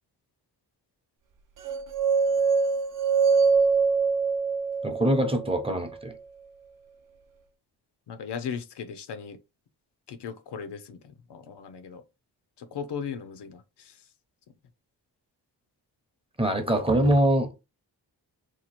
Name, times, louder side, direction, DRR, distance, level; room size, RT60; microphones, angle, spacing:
sound 1, 1.7-5.8, right 5 dB, 50° right, 0.6 m, -24 dB
voice 1, 4.8-6.1 16.4-17.5, right 1 dB, 15° right, 0.7 m, -23 dB
voice 2, 8.1-9.4 10.1-12.0 12.6-13.9, left 7 dB, 75° left, 0.6 m, -37 dB
2.9 x 2.2 x 4.2 m
cardioid pair, 80°, 41 cm